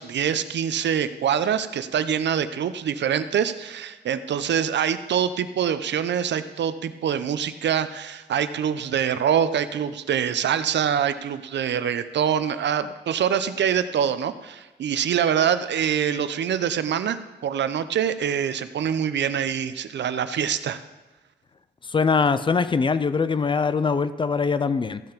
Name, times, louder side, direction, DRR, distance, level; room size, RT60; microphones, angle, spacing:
voice 1, 0.0-20.8, right 8 dB, 80° right, 12 dB, 0.6 m, -25 dB
voice 2, 21.9-25.0, left 5 dB, 30° left, 13 dB, 0.4 m, -22 dB
14.5 x 5.7 x 5.2 m, 1.2 s
wide cardioid pair, 165°, 18 cm